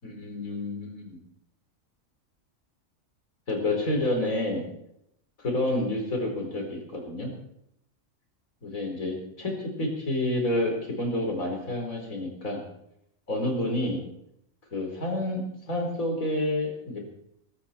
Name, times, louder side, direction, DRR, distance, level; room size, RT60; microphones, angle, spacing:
voice 1, 0.0-1.2 3.5-4.6 5.4-7.3 8.6-12.6 13.3-14.0 14.7-17.1, left 1 dB, 90° left, 2 dB, 4.8 m, -29 dB
21.5 x 13.5 x 4.4 m, 0.78 s
omnidirectional pair, 1.4 m